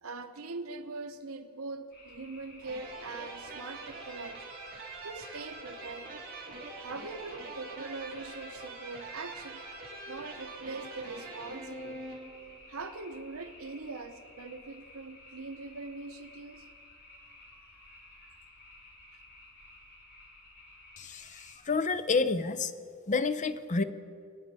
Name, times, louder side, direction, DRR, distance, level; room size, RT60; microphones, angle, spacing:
voice 1, 0.0-4.5 5.0-6.2 6.8-9.6 10.1-12.0 12.7-16.7 17.2-18.4, right 3 dB, 80° right, 9 dB, 0.9 m, -42 dB
sound 1, 1.9-21.6, left 2 dB, 55° left, 3.3 m, -54 dB
sound 2, 2.6-12.6, right 3 dB, 45° right, 2.8 m, -44 dB
voice 2, 21.0-22.7 23.1-23.8, left 4 dB, 35° left, 12 dB, 0.6 m, -29 dB
23.5 x 9.1 x 5.4 m, 2.3 s
head